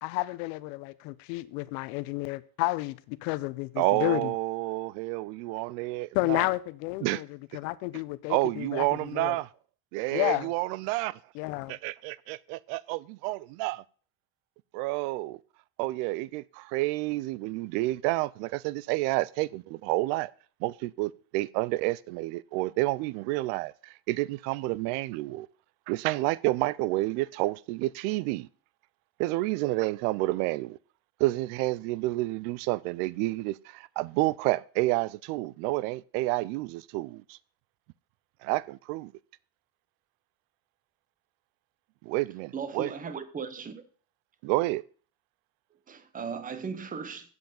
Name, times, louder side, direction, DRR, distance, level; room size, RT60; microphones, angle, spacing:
voice 1, 0.0-4.3 6.1-7.3 7.5-9.4 10.1-10.5 11.3-11.8, left 20 dB, 85° left, 0.8 m, -31 dB
voice 2, 3.8-6.5 7.0-7.2 8.3-9.5 9.9-11.2 11.7-13.8 14.7-15.4 15.8-20.3 20.6-25.5 25.9-28.5 29.2-30.8 31.2-37.4 38.4-39.1 42.0-42.9 44.4-44.8, right 20 dB, 80° right, 0.6 m, -29 dB
voice 3, 42.5-43.8 45.9-47.4, right 5 dB, 15° right, 0.9 m, -37 dB
8.0 x 8.0 x 6.9 m
cardioid pair, 160°, 47 cm